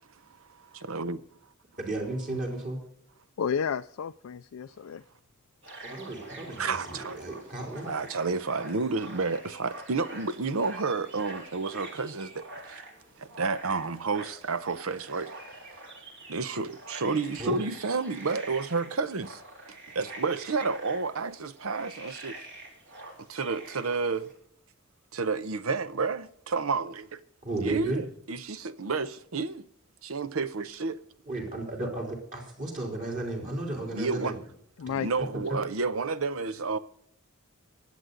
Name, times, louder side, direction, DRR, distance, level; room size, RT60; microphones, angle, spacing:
voice 1, 0.4-1.2 6.6-7.3 7.8-12.8 13.2-15.3 16.3-19.4 19.7-22.4 23.3-24.3 25.1-27.2 27.6-29.7 30.0-31.0 33.9-34.4 35.0-36.8, right 4 dB, 85° right, 0.8 m, -31 dB
voice 2, 1.8-2.8 5.9-7.9 17.4-17.6 27.4-28.0 31.3-34.4 34.9-35.0 35.5-35.6, right 2 dB, 40° right, 3.5 m, -34 dB
voice 3, 3.4-5.0 34.8-35.1, left 7 dB, 80° left, 0.4 m, -32 dB
sound 1, 5.6-24.3, right 2 dB, 60° right, 3.8 m, -46 dB
23.0 x 8.0 x 3.9 m
head